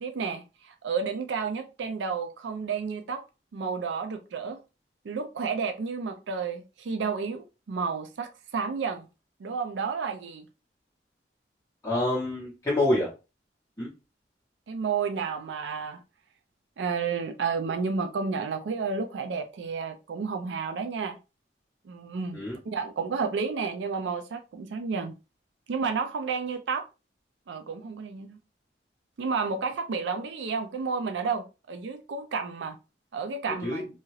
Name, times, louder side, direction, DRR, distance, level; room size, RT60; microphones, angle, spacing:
voice 1, 0.0-3.2 3.5-4.6 5.0-9.1 9.4-10.4 14.7-16.0 16.8-21.2 21.9-22.4 22.7-25.1 25.7-26.8 27.5-28.4 29.2-32.8 33.1-33.8, right 5 dB, 80° right, 0.4 m, -31 dB
voice 2, 11.8-13.1 13.8-13.9 22.3-22.6 33.5-33.9, left 1 dB, 15° left, 0.8 m, -27 dB
2.8 x 2.4 x 3.0 m
head